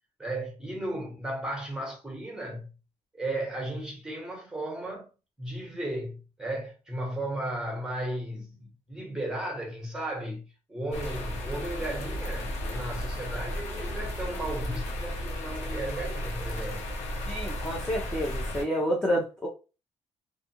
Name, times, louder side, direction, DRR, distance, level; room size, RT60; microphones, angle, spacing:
voice 1, 0.2-2.7 3.1-5.1 5.4-16.9, right 1 dB, 5° right, 1.0 m, -35 dB
sound 1, 10.9-18.6, left 1 dB, 85° left, 0.8 m, -34 dB
voice 2, 17.3-19.5, equal, 10° left, 0.5 m, -29 dB
2.6 x 2.3 x 2.7 m
cardioid pair, 150°, 11 cm